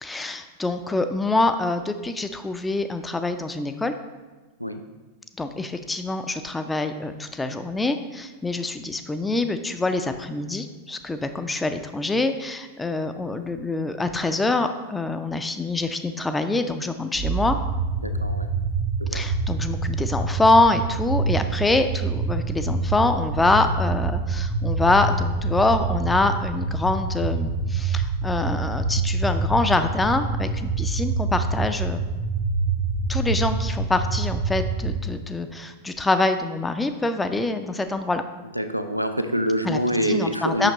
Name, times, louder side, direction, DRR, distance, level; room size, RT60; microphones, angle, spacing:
voice 1, 0.0-3.9 5.4-17.6 19.1-32.1 33.1-38.2 39.6-39.8 40.1-40.7, left 2 dB, 10° left, 9 dB, 0.4 m, -25 dB
sound 1, 17.1-35.1, right 3 dB, 45° right, 0.7 m, -26 dB
voice 2, 18.0-18.5 19.0-19.3 38.6-40.7, equal, 90° right, 8 dB, 0.3 m, -26 dB
6.6 x 5.8 x 3.0 m, 1.2 s
figure-of-eight pair, 90°, 0 cm